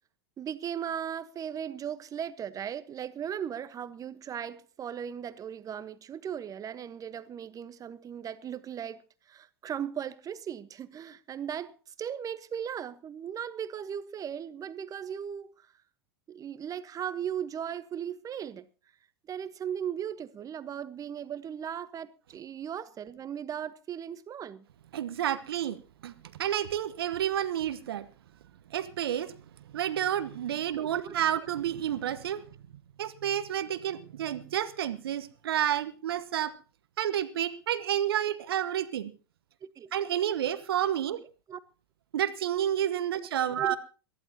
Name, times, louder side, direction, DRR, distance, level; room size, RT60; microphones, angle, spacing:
voice 1, 0.4-9.0 9.3-15.7 16.3-18.7 19.3-24.7 31.0-31.2 39.6-39.9 41.5-41.6 43.6-43.8, right 9 dB, 25° right, 1.2 m, -37 dB
voice 2, 24.9-25.8 26.0-26.1 26.4-28.0 28.7-29.4 29.7-32.5 33.0-36.5 37.0-39.1 39.9-41.2 42.1-43.8, right 10 dB, 70° right, 1.2 m, -30 dB
22.0 x 14.5 x 2.9 m
figure-of-eight pair, 90°, 13 cm